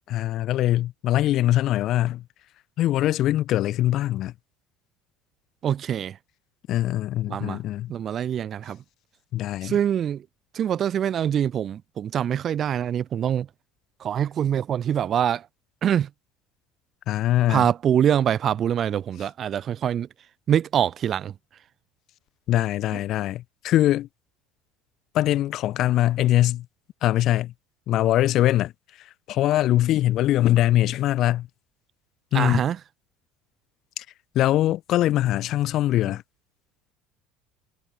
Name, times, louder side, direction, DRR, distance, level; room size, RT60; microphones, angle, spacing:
voice 1, 0.1-2.2 2.8-4.3 6.7-7.9 9.3-9.8 17.1-17.7 22.5-24.1 25.1-26.6 27.0-27.5 27.9-28.7 29.3-31.5 32.3-32.6 34.0-34.1 34.3-36.2, left 14 dB, 50° left, 1.2 m, -22 dB
voice 2, 5.6-6.2 7.3-7.6 7.9-8.8 9.6-10.2 10.5-13.5 14.0-15.4 15.8-16.1 17.5-20.1 20.5-21.3 32.3-32.8, right 9 dB, 40° right, 0.5 m, -24 dB
figure-of-eight pair, 65°, 0 cm